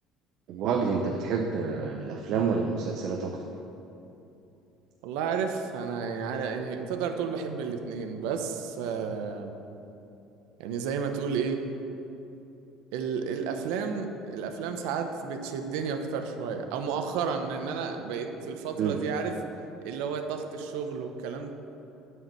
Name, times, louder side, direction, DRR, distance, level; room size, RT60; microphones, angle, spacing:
voice 1, 0.5-3.4 18.8-19.0, right 5 dB, 50° right, 2 dB, 0.7 m, -28 dB
voice 2, 5.0-9.6 10.6-11.6 12.9-19.3 19.8-21.5, right 6 dB, 80° right, 6 dB, 0.9 m, -32 dB
11.0 x 4.8 x 7.4 m, 2.9 s
cardioid pair, 170°, 0 cm